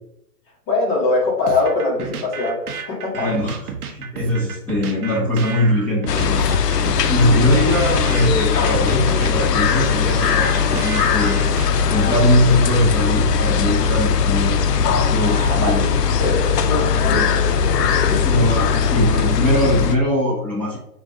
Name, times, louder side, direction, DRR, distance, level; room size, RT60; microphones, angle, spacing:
voice 1, 0.7-3.3 15.2-18.3, left 3 dB, 25° left, -2 dB, 1.1 m, -23 dB
sound 1, 1.5-12.3, right 6 dB, 65° right, 0.7 m, -32 dB
voice 2, 3.1-3.6 3.8-6.4 7.1-11.5 11.9-14.5 15.1-15.8 16.9-17.4 18.2-20.8, left 1 dB, 5° left, -7 dB, 0.7 m, -21 dB
sound 2, 6.1-20.0, left 6 dB, 75° left, 0.6 m, -19 dB
4.8 x 2.4 x 2.6 m, 0.77 s
hypercardioid pair, 130°, 48 cm